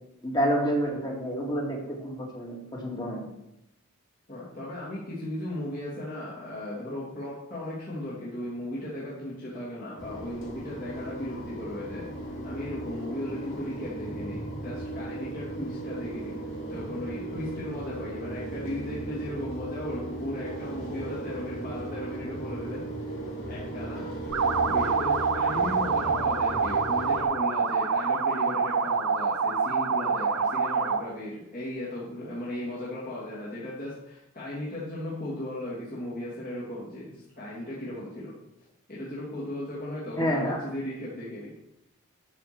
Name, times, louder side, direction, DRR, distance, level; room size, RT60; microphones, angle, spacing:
voice 1, 0.2-3.3 40.2-40.6, equal, 20° left, -2 dB, 2.3 m, -28 dB
voice 2, 4.3-12.1 12.4-16.4 16.7-22.8 23.2-24.0 24.6-38.3 38.9-41.5, left 1 dB, 40° left, -8 dB, 2.9 m, -36 dB
sound 1, 10.0-27.2, right 1 dB, 60° left, 2.8 m, -36 dB
sound 2, 24.3-31.1, right 5 dB, 75° right, 0.7 m, -26 dB
12.5 x 5.0 x 6.2 m, 0.85 s
head